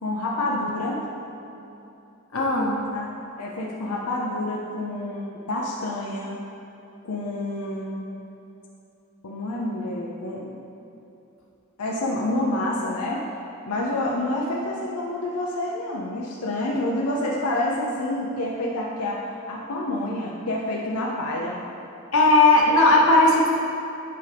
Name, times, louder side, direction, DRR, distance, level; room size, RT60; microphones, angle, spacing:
voice 1, 0.0-1.0 2.9-3.1 3.4-6.4 7.0-8.1 9.2-10.6 11.8-13.3 13.7-19.2 19.5-21.6, left 1 dB, 90° left, -3 dB, 0.6 m, -28 dB
voice 2, 2.3-2.8 22.1-23.5, left 2 dB, 65° left, -2 dB, 1.0 m, -17 dB
9.4 x 5.0 x 3.4 m, 2.8 s
head